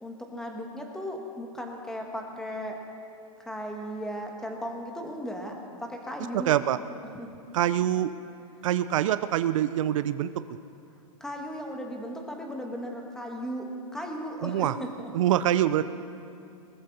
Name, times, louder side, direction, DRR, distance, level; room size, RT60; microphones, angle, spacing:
voice 1, 0.0-2.8 3.4-5.5 5.8-6.5 7.1-7.3 11.2-13.7 13.9-15.1, equal, 5° left, 1 dB, 1.4 m, -36 dB
voice 2, 6.3-6.8 7.5-8.1 8.6-10.3 14.4-14.7 15.1-15.8, right 12 dB, 65° right, 13 dB, 0.5 m, -24 dB
20.0 x 13.5 x 4.1 m, 2.6 s
hypercardioid pair, 150°, 18 cm